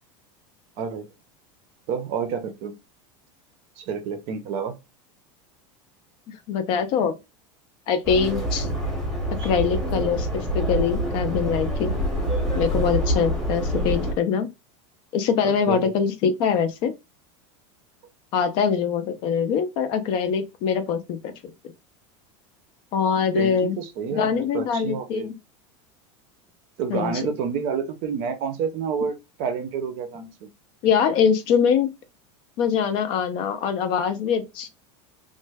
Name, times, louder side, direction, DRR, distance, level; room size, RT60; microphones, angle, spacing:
voice 1, 1.9-2.7 3.8-4.8 9.4-9.5 15.4-15.9 23.3-25.3 26.8-30.5, right 6 dB, 35° right, 0.6 m, -29 dB
voice 2, 6.5-7.1 7.9-8.7 9.4-10.3 10.5-12.0 12.5-14.5 15.1-16.9 18.3-21.3 22.9-23.8 24.1-25.3 26.9-27.3 30.8-31.9 32.6-34.7, left 7 dB, 35° left, 0.4 m, -23 dB
Subway metro underground, 8.0-14.1, right 1 dB, ahead, 0.8 m, -26 dB
3.1 x 2.1 x 3.3 m
supercardioid pair, 175°, 15 cm